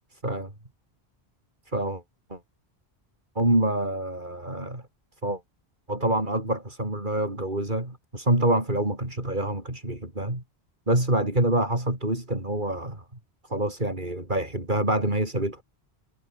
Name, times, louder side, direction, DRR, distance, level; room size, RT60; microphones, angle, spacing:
voice 1, 1.7-2.0 2.3-2.4 3.4-4.8 5.2-5.4 5.9-10.4 10.9-13.0 13.4-15.6, right 1 dB, 50° right, 5.9 m, -26 dB
omnidirectional pair, 1.1 m